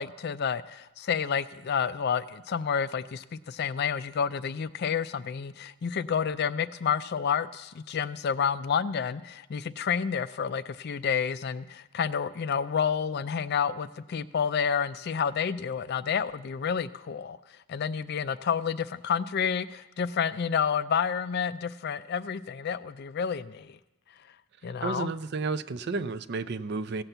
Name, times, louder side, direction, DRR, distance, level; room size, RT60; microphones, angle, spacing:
voice 1, 0.0-17.4 17.7-23.8 24.6-25.1, left 7 dB, 50° left, 15 dB, 0.3 m, -29 dB
voice 2, 24.8-27.0, right 4 dB, 50° right, 13 dB, 0.4 m, -32 dB
16.0 x 5.8 x 7.9 m, 1.0 s
head